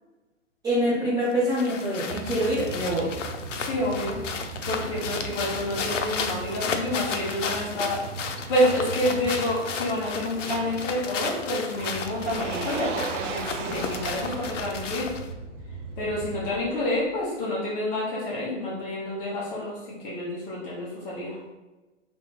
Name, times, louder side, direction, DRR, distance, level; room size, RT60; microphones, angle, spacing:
voice 1, 0.6-3.1 5.1-5.2, equal, 10° right, -11 dB, 0.9 m, -25 dB
sound 1, 1.2-15.3, left 5 dB, 75° left, 0.7 m, -34 dB
sound 2, 2.1-16.6, right 5 dB, 40° right, 0.8 m, -40 dB
Motor vehicle (road), 2.5-17.2, right 5 dB, 75° right, 0.7 m, -41 dB
voice 2, 3.6-4.2 4.6-15.0 16.0-21.4, left 1 dB, 20° left, -6 dB, 1.3 m, -28 dB
3.7 x 3.3 x 3.9 m, 1.1 s
hypercardioid pair, 155°, 37 cm